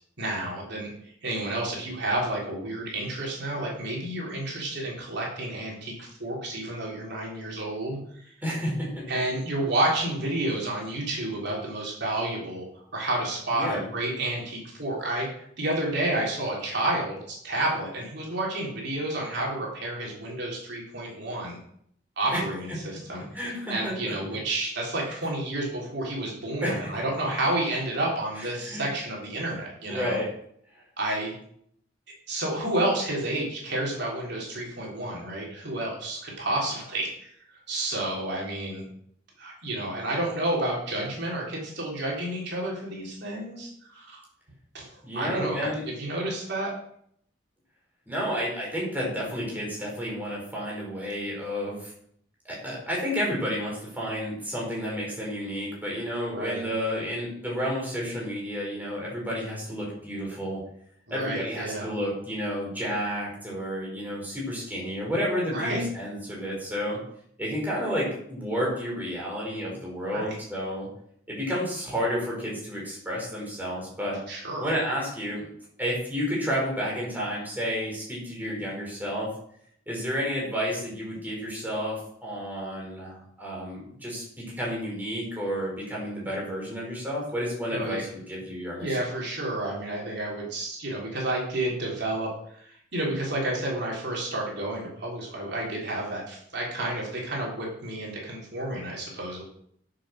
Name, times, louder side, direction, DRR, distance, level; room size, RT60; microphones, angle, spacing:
voice 1, 0.2-8.0 9.1-12.6 12.9-21.6 22.2-23.4 23.7-30.2 31.0-31.3 32.3-38.8 39.4-44.2 44.7-45.7 46.0-46.7 56.3-56.6 61.1-61.8 65.5-65.8 70.1-70.4 74.3-74.7 87.7-88.0 88.8-99.4, right 1 dB, 60° right, -3 dB, 3.5 m, -30 dB
voice 2, 8.4-9.0 13.5-13.9 22.3-22.4 23.3-24.1 25.0-25.1 26.6-26.9 28.4-28.8 29.9-30.3 30.7-30.8 45.0-45.9 48.1-51.9 52.4-60.6 61.1-67.0 67.4-70.9 71.3-74.2 74.6-75.5 75.8-79.3 79.9-89.0, equal, 10° right, -4 dB, 4.9 m, -31 dB
10.0 x 7.2 x 6.4 m, 0.68 s
head